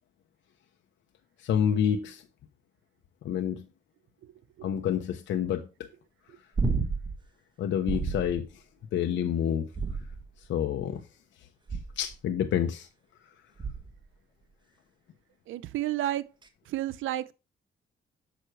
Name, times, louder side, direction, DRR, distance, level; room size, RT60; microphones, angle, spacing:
voice 1, 1.4-2.2 3.2-3.6 4.6-5.7 7.6-8.5 8.9-9.7 10.5-11.0 12.0-12.9, left 9 dB, 70° left, 1.0 m, -28 dB
sound 1, 6.6-7.2 7.9-8.4 9.7-10.5 11.7-12.1 13.6-14.0 16.4-16.5, right 4 dB, 25° right, 1.6 m, -31 dB
voice 2, 15.5-16.2 16.7-17.3, right 14 dB, 80° right, 0.7 m, -31 dB
8.0 x 6.2 x 4.7 m
cardioid pair, 90°, 20 cm